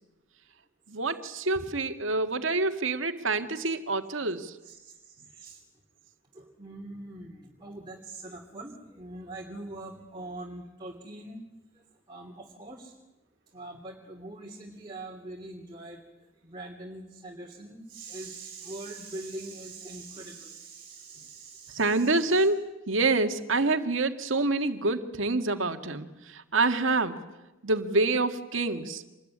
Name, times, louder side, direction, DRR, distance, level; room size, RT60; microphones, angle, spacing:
voice 1, 0.9-4.6 21.7-27.2 27.6-29.0, right 3 dB, 80° right, 7 dB, 1.9 m, -27 dB
voice 2, 4.6-5.6 6.3-11.4 11.7-12.9 13.5-16.0 16.4-22.5, right 2 dB, 25° right, 0 dB, 2.9 m, -43 dB
26.5 x 21.0 x 9.8 m, 1.0 s
head